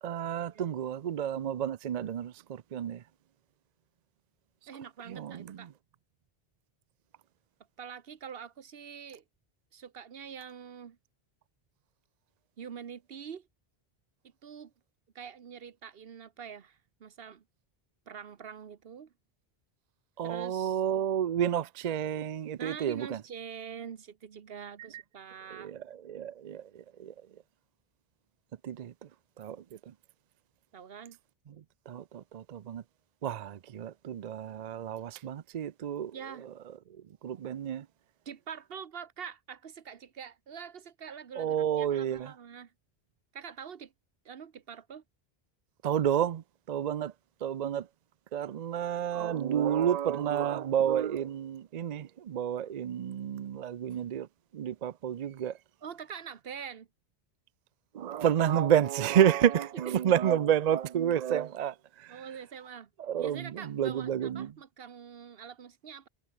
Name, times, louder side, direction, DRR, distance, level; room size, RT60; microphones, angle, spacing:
voice 1, 0.0-3.0 5.1-5.6 20.2-23.2 25.5-27.1 28.6-28.9 29.4-29.6 31.9-32.8 33.2-36.2 37.2-37.9 41.4-42.3 45.8-47.1 47.4-47.9 48.3-54.3 54.5-55.5 57.9-62.2 63.0-64.5, right 9 dB, 50° right, 0.5 m, -30 dB
voice 2, 4.7-5.7 7.8-9.2 9.7-11.0 12.6-13.5 14.2-14.7 15.1-17.4 18.1-19.1 20.2-20.8 22.6-25.7 30.7-31.2 36.1-36.5 38.3-42.7 43.3-43.9 44.2-45.0 55.8-56.9 59.7-59.8 62.1-62.9 63.2-66.1, right 7 dB, 70° right, 1.2 m, -45 dB
omnidirectional pair, 1.0 m